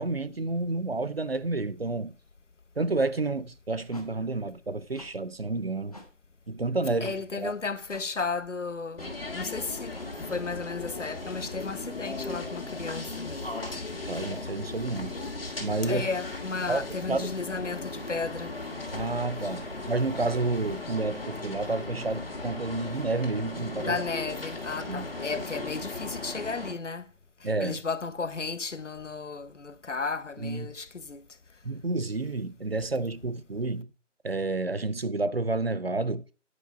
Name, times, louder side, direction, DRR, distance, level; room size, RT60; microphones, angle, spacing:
voice 1, 0.0-2.1 2.8-6.0 6.5-7.5 14.1-15.1 15.6-16.1 16.7-17.3 18.9-24.0 24.9-25.1 27.4-27.8 30.4-30.7 31.6-33.9 34.2-36.2, right 3 dB, 55° right, 0.7 m, -30 dB
sound 1, 3.9-4.1 4.9-5.1 5.9-6.1 7.0-7.2 7.9-8.1 9.0-9.1 9.9-10.1, left 1 dB, 30° left, 1.2 m, -48 dB
voice 2, 7.0-13.4 15.8-18.6 23.8-27.1 27.4-31.2, left 4 dB, 75° left, 1.0 m, -34 dB
sound 2, 9.0-26.7, left 3 dB, 50° left, 2.2 m, -37 dB
9.8 x 4.7 x 5.1 m
figure-of-eight pair, 170°, 37 cm